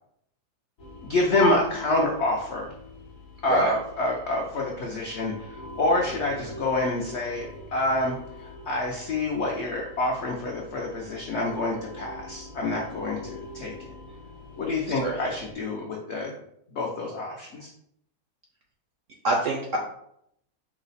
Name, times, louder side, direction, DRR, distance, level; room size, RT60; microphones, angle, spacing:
sound 1, 0.8-15.5, left 1 dB, 60° left, 1.1 m, -45 dB
voice 1, 1.0-2.7 3.4-13.9 14.6-16.3 16.7-17.7, left 2 dB, 80° left, -1 dB, 0.6 m, -27 dB
voice 2, 19.2-19.8, right 3 dB, 75° right, 0 dB, 0.7 m, -26 dB
4.7 x 2.0 x 3.9 m, 0.74 s
omnidirectional pair, 1.8 m